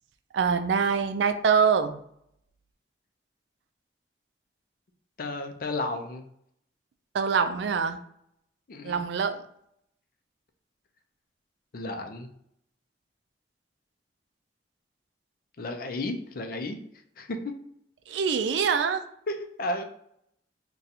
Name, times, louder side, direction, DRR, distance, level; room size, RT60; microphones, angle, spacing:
voice 1, 0.3-2.0 7.1-8.0 8.8-9.4 18.1-19.0, right 6 dB, 90° right, 9 dB, 0.4 m, -24 dB
voice 2, 5.2-6.2 8.7-9.1 11.7-12.3 15.6-16.8 17.2-17.5 19.3-19.8, left 2 dB, 55° left, 6 dB, 0.5 m, -33 dB
2.7 x 2.3 x 4.0 m, 0.71 s
head